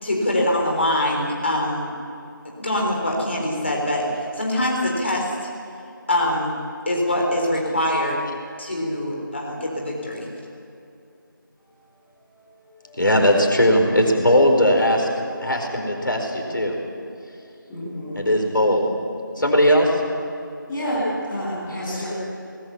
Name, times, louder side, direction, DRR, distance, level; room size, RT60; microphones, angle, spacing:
voice 1, 0.0-1.9 2.6-4.1 4.4-5.3 6.1-6.6 6.9-8.2 8.6-10.3, left 1 dB, 30° left, -1 dB, 4.0 m, -23 dB
voice 2, 13.0-16.8 18.1-18.9 19.4-20.0, equal, 65° left, 2 dB, 4.6 m, -19 dB
voice 3, 17.7-18.2 20.7-22.1, equal, 5° left, -14 dB, 3.5 m, -29 dB
20.5 x 20.0 x 7.2 m, 2.7 s
figure-of-eight pair, 170°, 12 cm